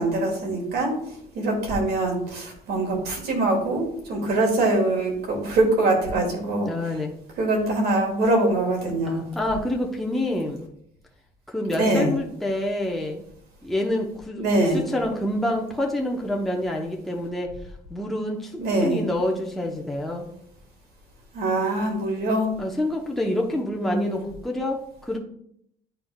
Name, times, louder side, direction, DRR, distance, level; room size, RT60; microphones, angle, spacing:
voice 1, 0.0-7.0 7.4-9.2 11.7-12.1 14.4-14.8 18.6-19.0 21.3-22.5 23.7-24.2, right 2 dB, 70° right, 0 dB, 2.3 m, -23 dB
voice 2, 6.6-7.1 9.1-10.6 11.5-13.2 13.6-14.4 14.7-17.5 17.9-20.3 22.6-25.2, left 1 dB, ahead, 0 dB, 0.8 m, -27 dB
10.5 x 4.3 x 2.3 m, 0.71 s
cardioid pair, 110°, 17 cm